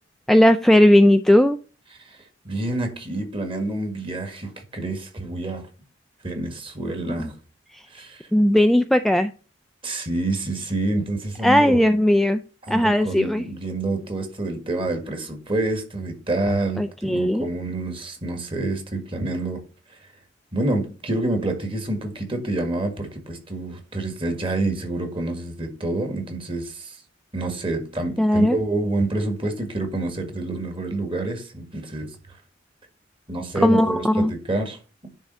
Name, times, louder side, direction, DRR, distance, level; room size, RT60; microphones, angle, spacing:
voice 1, 0.3-1.6 7.2-7.3 8.3-9.3 11.4-12.4 12.7-13.4 16.8-17.4 28.2-28.6 33.6-34.3, left 1 dB, ahead, 0.3 m, -17 dB
voice 2, 2.5-5.7 6.2-7.4 7.9-8.3 9.8-11.8 12.7-19.6 20.5-27.0 27.3-32.1 33.3-34.8, right 2 dB, 30° right, 1.7 m, -27 dB
10.0 x 3.6 x 5.5 m
head